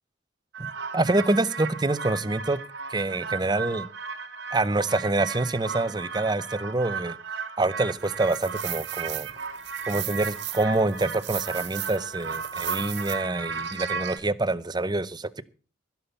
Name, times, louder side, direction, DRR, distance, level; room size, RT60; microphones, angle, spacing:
sound 1, 0.5-14.2, right 6 dB, 55° right, 1.6 m, -34 dB
voice 1, 0.9-2.6 2.9-3.9 4.5-7.2 7.6-9.3 9.9-15.4, right 2 dB, 20° right, 0.7 m, -26 dB
15.5 x 7.0 x 6.9 m
head